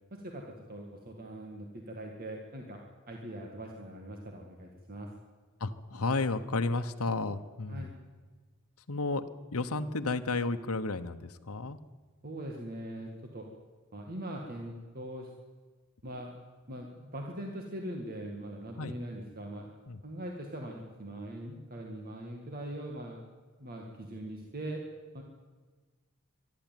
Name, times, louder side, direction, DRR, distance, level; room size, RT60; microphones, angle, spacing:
voice 1, 0.1-2.8 3.1-5.1 7.7-7.9 12.2-13.5 13.9-15.3 16.0-16.4 16.7-19.8 20.0-23.2 23.6-24.8 25.1-25.2, right 1 dB, 45° right, 1 dB, 2.0 m, -41 dB
voice 2, 5.6-7.9 8.9-9.2 9.5-11.8 18.8-18.9 19.9-20.0, left 3 dB, 85° left, 7 dB, 1.0 m, -32 dB
24.0 x 12.0 x 9.2 m, 1.4 s
head